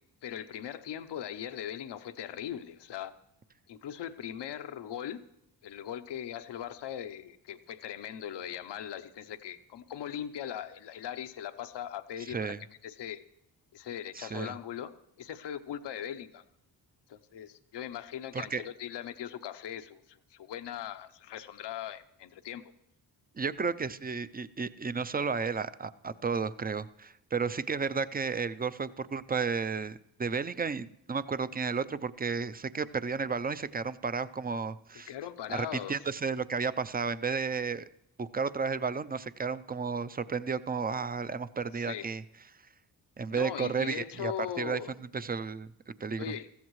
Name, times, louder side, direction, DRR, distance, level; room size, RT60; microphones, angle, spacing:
voice 1, 0.2-3.1 3.7-5.2 5.6-12.5 12.8-13.2 13.7-14.9 15.2-16.4 17.1-22.6 35.1-36.0 41.7-42.1 43.3-44.9 46.2-46.5, left 10 dB, 80° left, 10 dB, 0.9 m, -40 dB
voice 2, 12.3-12.6 14.1-14.6 18.3-18.6 23.4-35.1 35.5-37.9 38.2-42.2 43.2-44.3 44.6-44.8 45.1-45.7 46.0-46.2, right 5 dB, 20° right, 14 dB, 0.5 m, -33 dB
21.0 x 15.0 x 3.2 m, 0.82 s
cardioid pair, 90°, 41 cm